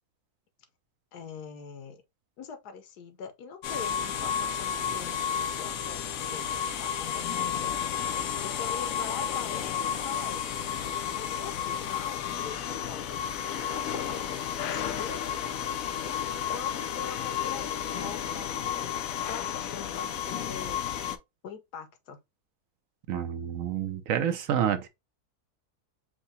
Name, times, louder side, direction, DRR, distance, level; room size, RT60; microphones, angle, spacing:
voice 1, 1.1-2.0 2.4-7.9 8.4-10.5 11.1-13.3 13.7-15.2 16.5-20.8 21.4-22.2, left 6 dB, 85° left, 1.4 m, -43 dB
sound 1, 3.6-21.2, left 8 dB, 65° left, 1.0 m, -32 dB
voice 2, 23.1-24.9, right 9 dB, 65° right, 1.0 m, -28 dB
4.7 x 2.1 x 4.0 m
omnidirectional pair, 1.7 m